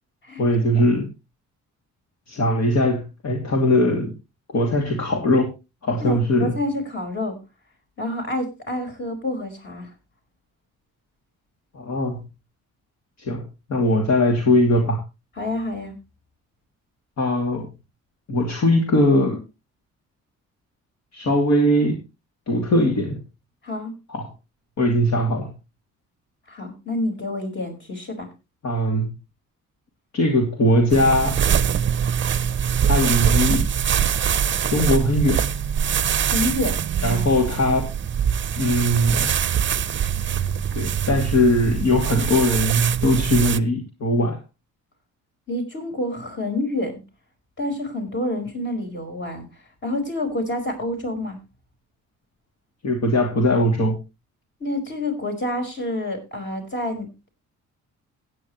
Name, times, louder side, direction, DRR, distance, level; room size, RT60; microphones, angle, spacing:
voice 1, 0.4-1.1 2.3-4.1 4.5-5.5 5.8-6.5 11.7-12.3 13.2-15.0 17.2-17.7 18.3-19.4 21.1-22.0 22.5-23.2 24.1-24.3 24.8-25.5 28.6-29.2 30.1-31.3 32.8-33.7 34.7-35.5 37.0-37.9 38.6-39.3 40.7-44.4 52.8-54.0, left 1 dB, 60° left, 2 dB, 2.8 m, -20 dB
voice 2, 6.0-7.4 8.0-9.9 15.4-16.0 23.6-23.9 26.5-28.3 36.2-37.2 45.5-47.0 47.6-49.5 49.8-51.4 54.6-57.1, left 1 dB, 40° left, 4 dB, 5.1 m, -28 dB
sound 1, 30.9-43.6, right 8 dB, 40° right, 0.7 m, -23 dB
16.0 x 9.4 x 3.1 m, 0.26 s
cardioid pair, 90°, 30 cm